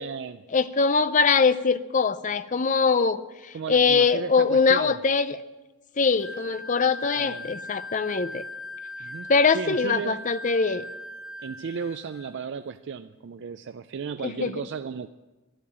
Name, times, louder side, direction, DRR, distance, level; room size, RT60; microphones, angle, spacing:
voice 1, 0.0-0.4 3.5-5.0 7.2-7.5 9.0-10.2 11.4-15.1, right 6 dB, 55° right, 10 dB, 0.4 m, -35 dB
voice 2, 0.5-5.4 6.0-8.4 9.3-10.8 14.2-14.5, left 5 dB, 35° left, 14 dB, 0.5 m, -22 dB
Wind instrument woodwind instrument, 6.2-12.4, left 1 dB, 65° left, 2.8 m, -39 dB
12.0 x 11.0 x 8.7 m, 1.2 s
head